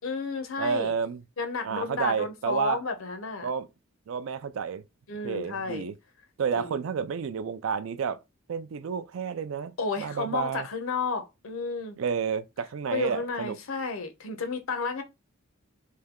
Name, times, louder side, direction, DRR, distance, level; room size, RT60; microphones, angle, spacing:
voice 1, 0.0-0.9 1.4-3.5 5.1-5.8 6.6-6.8 9.8-12.0 12.9-15.0, left 4 dB, 75° left, 0.8 m, -32 dB
voice 2, 0.6-1.2 1.6-2.8 3.4-3.7 4.1-4.8 5.2-5.9 6.4-8.2 8.5-10.7 12.0-13.6, right 6 dB, 70° right, 0.4 m, -30 dB
3.3 x 2.7 x 3.6 m
head